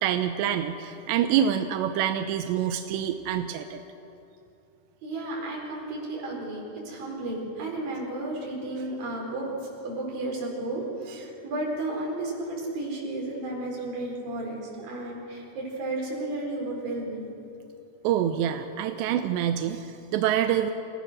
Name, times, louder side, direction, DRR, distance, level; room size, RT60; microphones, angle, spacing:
voice 1, 0.0-3.8 18.0-20.7, right 10 dB, 80° right, 7 dB, 2.6 m, -26 dB
voice 2, 5.0-9.5 9.8-17.3, right 2 dB, 45° right, -2 dB, 6.0 m, -33 dB
29.0 x 17.0 x 6.4 m, 2.8 s
omnidirectional pair, 5.8 m